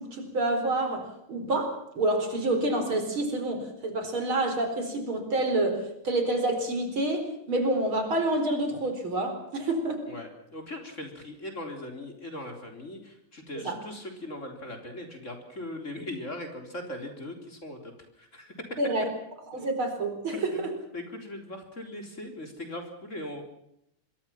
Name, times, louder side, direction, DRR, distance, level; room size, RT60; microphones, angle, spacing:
voice 1, 0.0-10.1 13.6-13.8 18.8-19.1 19.5-20.7, right 2 dB, 70° right, 6 dB, 5.3 m, -28 dB
voice 2, 10.1-18.6 19.6-19.7 20.3-23.4, left 1 dB, 35° left, 4 dB, 4.2 m, -40 dB
26.0 x 22.5 x 5.9 m, 0.74 s
omnidirectional pair, 2.3 m